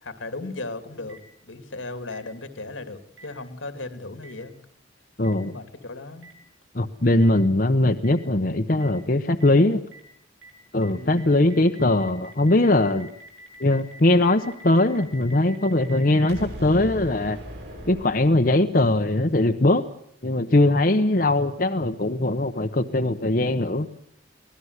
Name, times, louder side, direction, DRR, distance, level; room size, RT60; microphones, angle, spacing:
voice 1, 0.0-1.2 1.5-4.5 5.4-6.3 10.9-11.3, left 2 dB, 90° left, 9 dB, 2.7 m, -36 dB
Boom, 1.1-1.2 2.1-2.2 3.2-3.3 4.2-4.3 5.2-5.3 6.2-6.3 7.2-7.3 8.0-8.1 8.8-8.9 9.4-9.5 9.9-10.0 10.4-10.5 10.8-10.9 11.2-18.7, right 1 dB, 60° right, 7.9 m, -41 dB
voice 2, 5.2-5.5 6.7-9.8 10.7-13.1 13.6-17.4 17.9-19.8 20.2-23.9, left 2 dB, 45° left, 6 dB, 1.0 m, -20 dB
24.0 x 18.0 x 8.1 m, 0.68 s
head